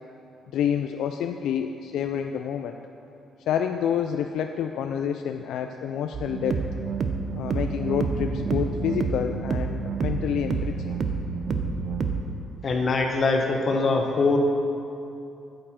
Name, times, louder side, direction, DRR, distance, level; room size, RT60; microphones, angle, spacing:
voice 1, 0.5-2.8 3.5-6.7 7.3-10.9, left 8 dB, 80° left, 6 dB, 0.3 m, -28 dB
sound 1, 6.1-12.2, right 5 dB, 55° right, 0.6 m, -29 dB
sound 2, 6.9-13.3, right 1 dB, 10° right, 2.3 m, -40 dB
voice 2, 12.6-14.4, left 3 dB, 45° left, 2 dB, 1.1 m, -23 dB
8.6 x 7.8 x 4.3 m, 2.7 s
cardioid pair, 90°, 0 cm